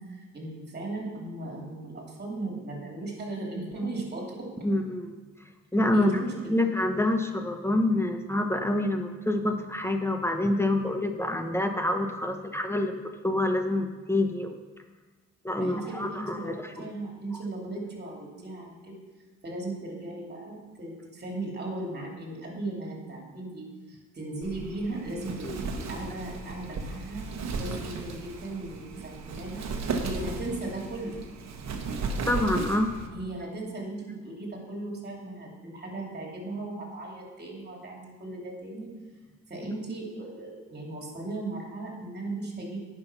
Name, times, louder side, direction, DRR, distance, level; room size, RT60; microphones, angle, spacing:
voice 1, 0.0-4.5 5.9-6.6 15.6-19.0 19.4-27.3 27.6-31.2 33.1-38.9 39.5-42.8, right 2 dB, 35° right, -1 dB, 2.8 m, -37 dB
voice 2, 4.6-5.1 5.7-6.2 6.5-12.9 13.2-14.5 15.4-16.8 25.4-25.6 32.3-32.9, left 1 dB, 10° left, 5 dB, 0.9 m, -27 dB
Wind, 24.4-33.1, right 4 dB, 65° right, 1.2 m, -35 dB
9.6 x 6.1 x 5.7 m, 1.3 s
cardioid pair, 90°, 30 cm